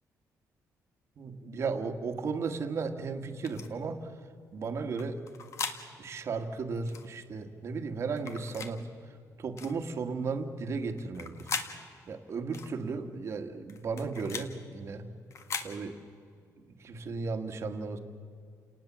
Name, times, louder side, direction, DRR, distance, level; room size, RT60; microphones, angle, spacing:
voice 1, 1.2-4.1 4.5-5.3 6.0-11.5 12.1-15.1 15.6-16.0 16.7-18.0, right 4 dB, 45° right, 7 dB, 1.7 m, -35 dB
sound 1, 3.4-3.7 5.0-5.8 6.9-7.1 8.2-8.7 9.6-9.8 11.0-11.7 12.5-12.7 13.7-14.5 15.3-15.7, left 6 dB, 50° left, 1.8 m, -38 dB
29.5 x 19.5 x 7.5 m, 2.3 s
cardioid pair, 170°, 7 cm